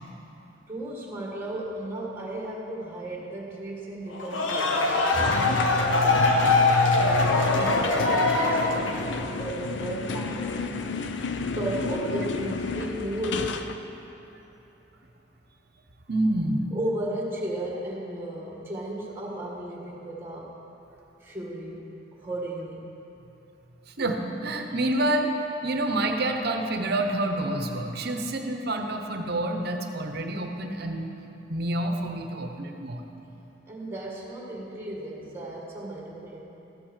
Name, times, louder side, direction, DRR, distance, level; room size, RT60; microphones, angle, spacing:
voice 1, 0.7-6.4 7.0-10.7 11.6-13.7 16.7-20.6 21.2-22.9 33.7-36.4, right 1 dB, 10° right, -3 dB, 1.7 m, -35 dB
sound 1, 4.1-9.2, left 3 dB, 90° left, 1.1 m, -23 dB
sound 2, 5.2-13.7, left 3 dB, 65° left, 0.5 m, -30 dB
voice 2, 16.1-16.7 23.9-25.3 25.6-31.1 31.5-33.0, right 1 dB, 55° right, 4 dB, 0.9 m, -28 dB
14.0 x 6.2 x 6.5 m, 3.0 s
head